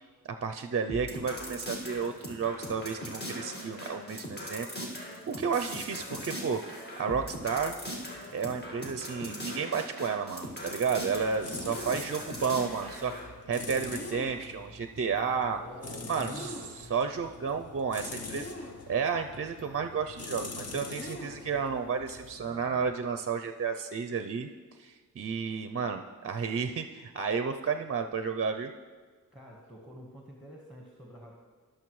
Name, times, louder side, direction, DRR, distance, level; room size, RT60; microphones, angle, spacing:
voice 1, 0.4-6.6 7.0-7.7 8.3-13.1 13.5-15.6 16.1-24.5 24.8-28.7, right 6 dB, 45° right, 7 dB, 0.5 m, -32 dB
sound 1, 0.9-13.3, equal, 30° left, 1.9 m, -40 dB
sound 2, 10.5-23.1, left 2 dB, 45° left, 0.8 m, -43 dB
voice 2, 11.5-12.3 15.5-16.7 22.4-22.9 29.3-31.4, equal, ahead, -2 dB, 1.3 m, -48 dB
17.5 x 6.5 x 3.1 m, 1.5 s
wide cardioid pair, 100°, 34 cm